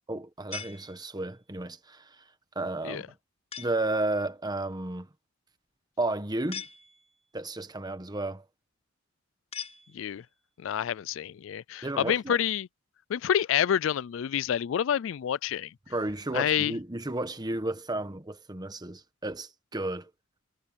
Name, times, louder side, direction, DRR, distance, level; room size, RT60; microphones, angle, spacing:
voice 1, 0.1-2.1 2.5-3.0 3.6-5.1 6.0-6.6 7.3-8.4 11.8-12.4 15.9-20.1, right 2 dB, 20° right, 1.2 m, -32 dB
sound 1, 0.5-1.5 3.5-4.0 6.5-7.3 9.5-10.4, left 7 dB, 30° left, 6.5 m, -42 dB
voice 2, 10.6-12.7 13.1-15.7 16.3-16.7, left 9 dB, 70° left, 0.3 m, -28 dB
head